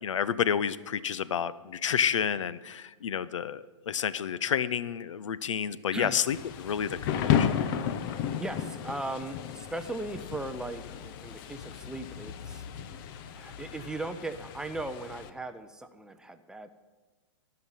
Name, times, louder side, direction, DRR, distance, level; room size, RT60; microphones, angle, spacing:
voice 1, 0.0-7.5, left 8 dB, 80° left, 16 dB, 0.6 m, -30 dB
voice 2, 5.9-6.3 8.4-12.7 13.3-16.7, right 2 dB, 5° right, 9 dB, 0.6 m, -38 dB
Thunder / Rain, 6.3-15.3, left 9 dB, 45° left, 0.8 m, -33 dB
14.5 x 5.9 x 8.8 m, 1.3 s
hypercardioid pair, 125°, 16 cm